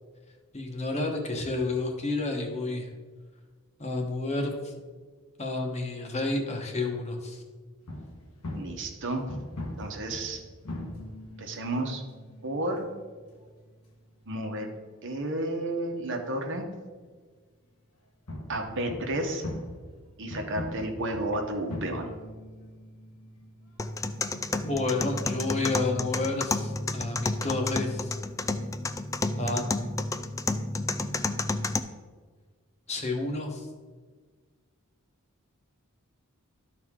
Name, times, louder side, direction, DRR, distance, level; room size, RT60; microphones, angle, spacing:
voice 1, 0.5-2.9 3.8-4.7 5.4-7.4 24.6-28.1 29.4-29.7 32.9-33.7, left 2 dB, 30° left, 2 dB, 1.1 m, -30 dB
sound 1, 7.8-15.8 16.1-16.2 17.0-17.1 18.3-24.7, left 1 dB, 75° left, 1.3 m, -42 dB
voice 2, 8.5-9.2 9.8-10.4 11.4-12.0 12.4-12.9 14.3-14.7 15.0-16.6 18.5-19.4 20.2-22.1, right 1 dB, 60° right, 3 dB, 1.1 m, -31 dB
sound 2, 23.8-31.8, left 3 dB, 15° left, 0.3 m, -31 dB
12.5 x 4.7 x 3.7 m, 1.5 s
head